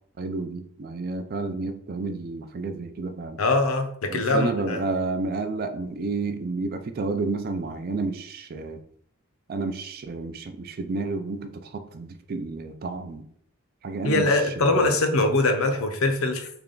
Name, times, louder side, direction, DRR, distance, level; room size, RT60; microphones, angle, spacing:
voice 1, 0.2-3.4 4.1-8.8 9.5-13.2 13.8-15.0, right 3 dB, 45° right, 8 dB, 0.3 m, -31 dB
voice 2, 3.4-4.8 14.0-16.5, left 2 dB, 75° left, 5 dB, 0.6 m, -22 dB
3.4 x 2.3 x 3.7 m, 0.64 s
head